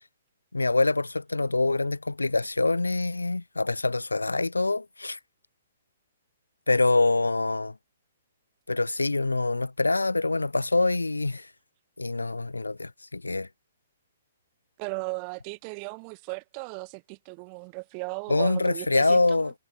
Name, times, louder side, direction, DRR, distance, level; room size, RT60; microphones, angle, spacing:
voice 1, 0.5-5.2 6.7-7.7 8.7-11.5 12.0-13.5 18.3-19.5, left 3 dB, 90° left, 1.3 m, -25 dB
voice 2, 14.8-19.4, right 40 dB or more, 35° right, 2.3 m, -36 dB
figure-of-eight pair, 125°, 0 cm